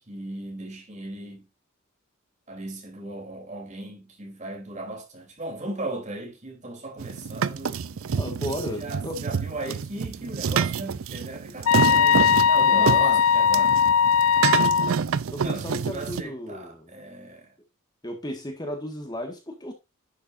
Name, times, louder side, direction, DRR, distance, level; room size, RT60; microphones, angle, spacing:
voice 1, 0.1-1.5 2.5-7.8 8.7-13.8 15.4-17.5, right 2 dB, 35° right, 3.2 m, -37 dB
sound 1, 7.0-16.2, right 6 dB, 70° right, 0.5 m, -28 dB
voice 2, 7.9-9.2 12.6-13.2 15.3-16.9 18.0-19.7, left 1 dB, 20° left, 1.6 m, -34 dB
sound 2, 11.7-14.9, left 7 dB, 85° left, 0.3 m, -19 dB
10.5 x 7.0 x 2.6 m
head